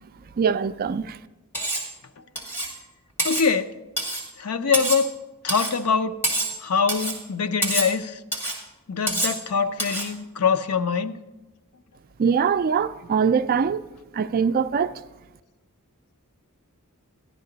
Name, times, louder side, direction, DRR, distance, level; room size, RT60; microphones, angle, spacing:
voice 1, 0.4-1.2 12.2-13.9 14.1-14.9, right 6 dB, 40° right, 0.3 m, -22 dB
Cutlery silverware, 1.5-1.9 2.4-2.8 3.2-3.5 4.0-4.3 4.7-5.1 5.5-5.8 6.2-6.6 6.9-7.2 7.6-7.9 8.3-8.6 9.1-9.4 9.8-10.1, right 1 dB, 10° left, 2.0 m, -27 dB
voice 2, 3.2-3.8 4.4-5.1 5.4-6.3 6.6-8.2 8.9-11.2, left 5 dB, 85° left, 0.6 m, -24 dB
12.5 x 11.0 x 3.9 m
head